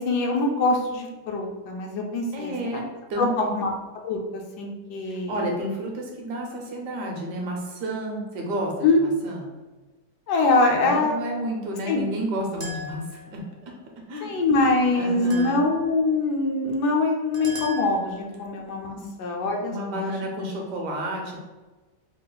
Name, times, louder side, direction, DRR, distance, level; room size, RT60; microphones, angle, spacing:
voice 1, 0.0-2.8 3.2-3.7 4.0-5.4 8.8-9.0 10.3-11.2 11.9-12.0 14.2-20.1, left 3 dB, 75° left, 1 dB, 1.2 m, -24 dB
voice 2, 2.3-2.8 3.1-3.5 5.0-9.5 10.7-13.7 14.1-14.3 14.9-15.6 19.0-19.1 19.6-21.4, right 1 dB, 75° right, 0 dB, 1.4 m, -31 dB
sound 1, 12.6-13.4 15.3-16.0 17.3-18.3, right 1 dB, 50° right, 0.6 m, -38 dB
3.5 x 2.4 x 3.8 m, 1.2 s
omnidirectional pair, 1.9 m